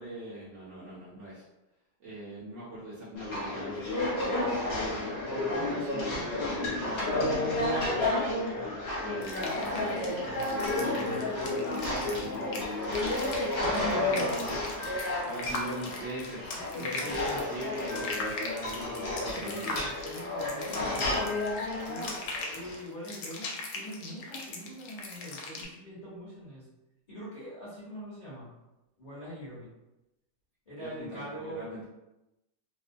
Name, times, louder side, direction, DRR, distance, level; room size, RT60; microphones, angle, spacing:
voice 1, 0.0-1.4 2.0-11.3 11.7-14.6 15.2-16.4 16.8-19.8 20.9-21.2 30.8-31.8, right 1 dB, 60° right, -8 dB, 0.8 m, -42 dB
sound 1, 3.2-22.8, left 2 dB, 50° left, 1.1 m, -31 dB
sound 2, 9.2-25.7, left 3 dB, 80° left, 1.1 m, -40 dB
voice 2, 10.7-11.2 13.6-14.3 16.5-17.2 19.0-20.9 21.8-22.1 22.5-26.7 27.1-28.5 29.0-29.7 30.7-31.7, equal, 30° left, -11 dB, 0.8 m, -42 dB
2.7 x 2.1 x 2.5 m, 0.95 s
omnidirectional pair, 1.7 m